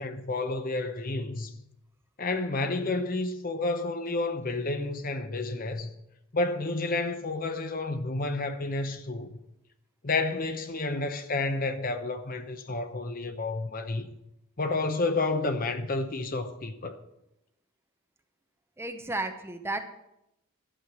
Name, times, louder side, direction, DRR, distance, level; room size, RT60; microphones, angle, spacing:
voice 1, 0.0-1.5 2.2-5.9 6.3-9.4 10.0-14.1 14.6-16.9, left 2 dB, 40° left, 0.8 m, -30 dB
voice 2, 18.8-19.8, right 2 dB, 10° right, 0.7 m, -33 dB
11.0 x 6.4 x 7.2 m
head